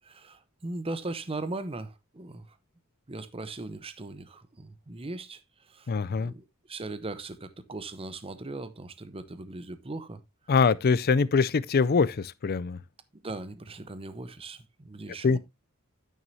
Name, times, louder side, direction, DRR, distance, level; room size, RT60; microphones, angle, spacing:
voice 1, 0.0-2.6 3.1-10.2 13.2-15.4, right 2 dB, 25° right, 0.7 m, -39 dB
voice 2, 5.9-6.3 10.5-12.8 15.2-15.4, left 5 dB, 45° left, 0.4 m, -23 dB
9.2 x 9.2 x 2.7 m
head